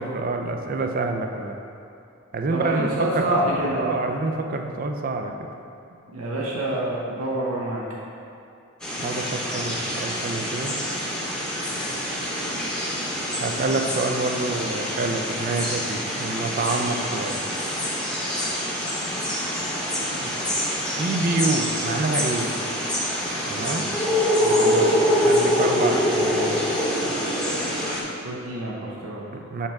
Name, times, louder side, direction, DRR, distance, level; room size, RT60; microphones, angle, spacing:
voice 1, 0.0-1.6 2.3-2.9 3.1-3.4 3.8-5.3 9.0-10.8 13.4-17.4 20.2-20.3 20.9-22.5 23.5-23.9 25.2-26.6 29.3-29.7, right 3 dB, 40° right, 4 dB, 0.4 m, -27 dB
voice 2, 2.5-4.0 6.1-7.8 24.4-25.0 28.2-29.2, right 1 dB, 80° right, -5 dB, 0.8 m, -27 dB
sound 1, 8.8-28.0, equal, 5° left, 0.8 m, -25 dB
5.5 x 3.5 x 5.7 m, 2.6 s
head